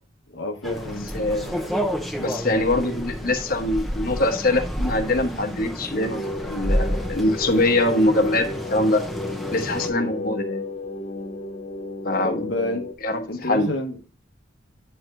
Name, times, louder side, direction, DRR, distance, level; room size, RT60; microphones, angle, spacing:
voice 1, 0.3-1.6 9.9-10.4 12.2-12.9 13.3-14.0, left 1 dB, 75° left, 1.1 m, -30 dB
sound 1, 0.6-9.9, equal, ahead, 0.7 m, -30 dB
voice 2, 1.1-1.8 2.2-9.0 9.5-10.6 12.0-12.5 13.0-13.7, left 1 dB, 50° left, 1.0 m, -23 dB
sound 2, 5.9-12.9, left 2 dB, 35° left, 0.5 m, -33 dB
9.1 x 4.6 x 2.5 m
head